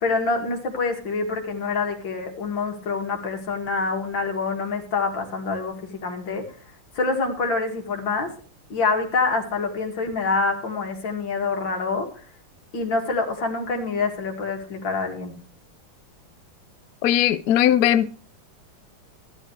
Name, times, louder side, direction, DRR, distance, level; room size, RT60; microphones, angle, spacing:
voice 1, 0.0-6.4 6.9-8.3 8.7-12.1 12.7-15.3, left 4 dB, 65° left, 2.9 m, -26 dB
voice 2, 17.0-18.1, left 11 dB, 80° left, 0.8 m, -19 dB
14.0 x 10.5 x 3.3 m
omnidirectional pair, 2.3 m